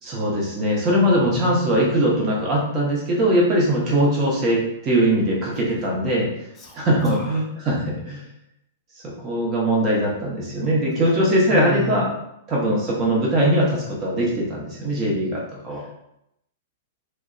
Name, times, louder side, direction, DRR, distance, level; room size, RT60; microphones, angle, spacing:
voice 1, 0.0-6.3 6.7-8.2 9.0-12.1 12.5-15.8, right 1 dB, 30° right, -4 dB, 0.9 m, -21 dB
voice 2, 1.1-2.2 6.6-6.7 7.0-7.4 10.9-11.1 11.5-12.0 15.7-16.0, left 4 dB, 20° left, -1 dB, 0.3 m, -33 dB
2.6 x 2.1 x 2.4 m, 0.81 s
hypercardioid pair, 130°, 0 cm